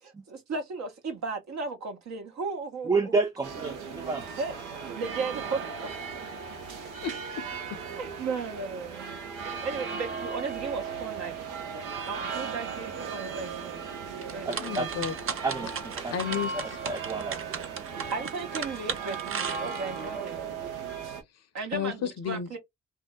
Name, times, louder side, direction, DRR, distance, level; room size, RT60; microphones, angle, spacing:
voice 1, 0.0-3.1 4.4-5.9 7.8-9.0 9.6-11.3 12.1-13.8 14.3-14.8 15.6-15.7 18.1-19.2 19.5-20.4 21.5-22.6, right 4 dB, 65° right, 1.1 m, -35 dB
voice 2, 2.9-4.3 14.5-14.9 15.4-16.1 16.8-17.6, right 3 dB, 15° right, 0.3 m, -30 dB
sound 1, 3.4-21.2, right 6 dB, 90° right, 0.7 m, -37 dB
voice 3, 7.0-7.4 7.7-7.8 14.6-15.1 16.1-16.8 21.7-22.5, left 8 dB, 60° left, 0.7 m, -32 dB
sound 2, 14.2-20.0, right 6 dB, 45° right, 0.7 m, -36 dB
2.7 x 2.1 x 3.5 m
hypercardioid pair, 45°, 29 cm